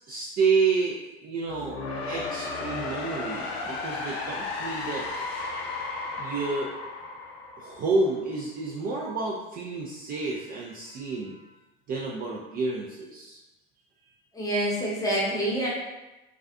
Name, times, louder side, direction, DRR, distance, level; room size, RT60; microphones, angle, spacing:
voice 1, 0.1-1.8 2.1-5.1 6.2-6.7 7.6-11.4 11.9-13.4, right 4 dB, 30° right, -3 dB, 0.3 m, -29 dB
sound 1, 1.4-8.4, left 3 dB, 90° left, 0.5 m, -34 dB
voice 2, 14.3-15.7, right 1 dB, 10° left, -5 dB, 0.8 m, -26 dB
2.4 x 2.2 x 2.4 m, 1.0 s
hypercardioid pair, 85°, 30 cm